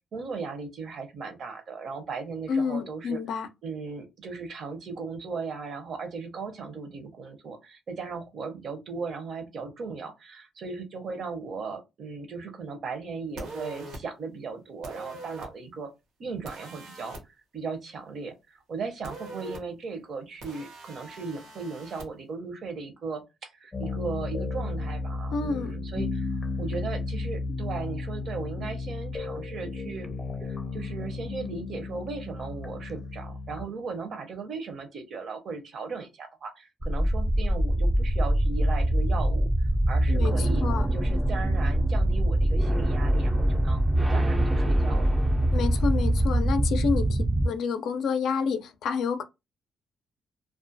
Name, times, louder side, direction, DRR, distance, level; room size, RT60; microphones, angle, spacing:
voice 1, 0.1-3.2 3.6-15.9 16.2-17.2 17.5-30.1 30.4-39.5 39.9-40.6 40.9-45.1, right 4 dB, 60° right, 0.6 m, -37 dB
voice 2, 2.5-3.5 25.3-25.7 40.1-40.9 45.5-49.2, left 5 dB, 75° left, 0.4 m, -29 dB
sound 1, 13.4-14.0 14.8-15.5 16.4-17.2 19.0-19.6 20.4-22.1, right 2 dB, 85° right, 0.9 m, -41 dB
sound 2, 23.7-33.7, left 3 dB, 25° left, 0.6 m, -33 dB
sound 3, 36.8-47.5, right 1 dB, 20° right, 0.3 m, -23 dB
2.3 x 2.2 x 2.6 m
cardioid pair, 90°, 0 cm